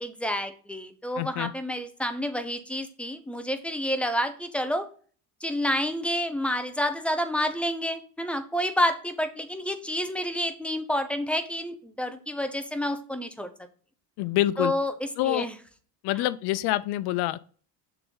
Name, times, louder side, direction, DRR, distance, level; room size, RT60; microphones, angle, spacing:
voice 1, 0.0-4.9 5.4-13.5 14.6-15.5 16.2-16.3, equal, 5° left, 0.6 m, -29 dB
voice 2, 1.2-1.5 14.2-14.7 15.2-15.5 16.0-17.4, left 15 dB, 70° left, 0.6 m, -26 dB
6.7 x 4.4 x 3.9 m
cardioid pair, 135°, 41 cm